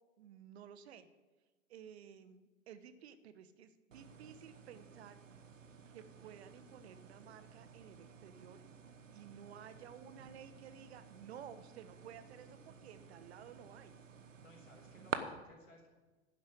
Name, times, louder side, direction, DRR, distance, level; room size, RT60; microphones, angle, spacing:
voice 1, 0.2-1.1 1.7-5.2 5.9-8.6 9.1-13.9 14.9-15.2, right 8 dB, 55° right, 12 dB, 0.9 m, -54 dB
sound 1, 3.9-15.2, right 7 dB, 80° right, 1.0 m, -50 dB
voice 2, 14.4-15.9, left 1 dB, 80° left, 0 dB, 3.8 m, -61 dB
10.5 x 7.4 x 7.0 m, 1.2 s
figure-of-eight pair, 100°, 38 cm